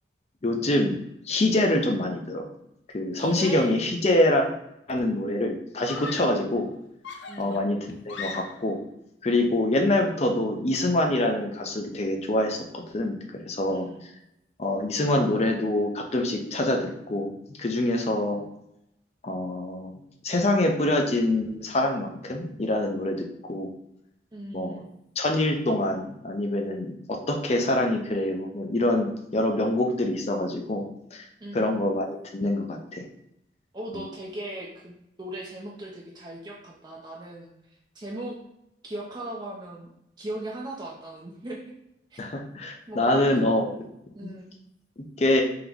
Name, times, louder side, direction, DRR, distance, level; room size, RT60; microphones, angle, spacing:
voice 1, 0.4-1.0 1.2-2.4 2.9-4.5 4.9-6.7 7.4-8.8 9.2-13.2 13.5-13.9 14.6-18.4 19.2-19.9 20.2-23.7 24.5-24.8 25.2-30.8 31.1-31.3 31.5-32.1 32.3-33.0 33.9-34.1 42.2-43.9 44.2-44.3 45.0-45.4, left 1 dB, 35° left, 3 dB, 0.5 m, -25 dB
voice 2, 3.1-3.7 7.3-7.7 13.7-14.0 24.3-24.9 31.4-31.9 33.7-37.5 37.9-38.4 38.8-39.9 40.2-41.6 42.1-42.2 42.9-43.2 44.2-44.6, right 1 dB, 25° right, -3 dB, 0.5 m, -38 dB
Screaming, 4.6-4.8 5.9-6.5 7.0-8.8, left 4 dB, 90° left, 0.4 m, -39 dB
3.7 x 2.9 x 3.5 m, 0.81 s
head